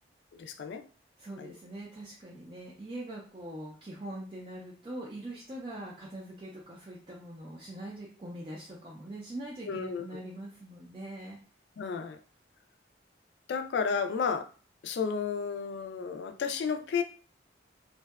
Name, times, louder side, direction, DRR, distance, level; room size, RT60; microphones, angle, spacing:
voice 1, 0.4-0.8 1.4-1.5 9.7-10.2 11.8-12.2 13.5-14.4 14.8-17.0, left 6 dB, 70° left, 7 dB, 0.3 m, -32 dB
voice 2, 1.2-11.4, right 1 dB, 30° right, -4 dB, 0.4 m, -42 dB
2.6 x 2.1 x 2.3 m, 0.38 s
head